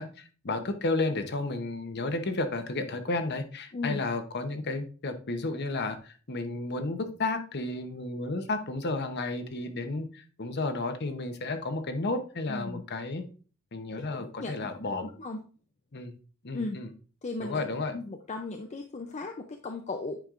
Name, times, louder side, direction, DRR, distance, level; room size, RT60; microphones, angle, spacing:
voice 1, 0.0-13.2 13.7-15.1 15.9-16.1 16.4-16.9 17.4-17.9, left 2 dB, 50° left, 8 dB, 0.8 m, -32 dB
voice 2, 3.7-4.0 12.5-12.8 14.0-15.4 16.5-16.8 17.2-17.6 17.9-20.2, left 3 dB, 30° left, 4 dB, 0.5 m, -37 dB
9.0 x 5.2 x 2.5 m, 0.38 s
head